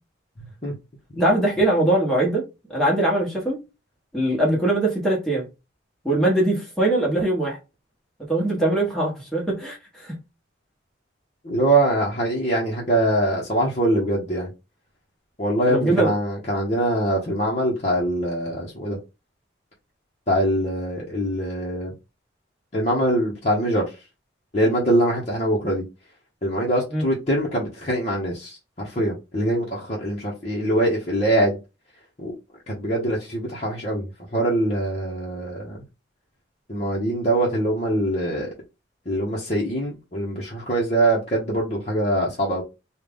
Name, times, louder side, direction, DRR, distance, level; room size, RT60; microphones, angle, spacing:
voice 1, 0.4-0.7 1.1-1.3 11.4-14.5 15.4-19.0 20.3-21.9 22.7-23.8 24.5-25.8 26.4-31.6 32.2-32.3 32.7-35.8 36.7-38.5 39.1-42.6, right 1 dB, 35° left, 1.0 m, -23 dB
voice 2, 1.2-2.4 2.7-3.6 4.1-5.5 6.0-7.6 8.3-10.1 15.7-16.1 26.9-27.0, right 1 dB, ahead, 1.2 m, -21 dB
3.8 x 2.4 x 3.5 m
head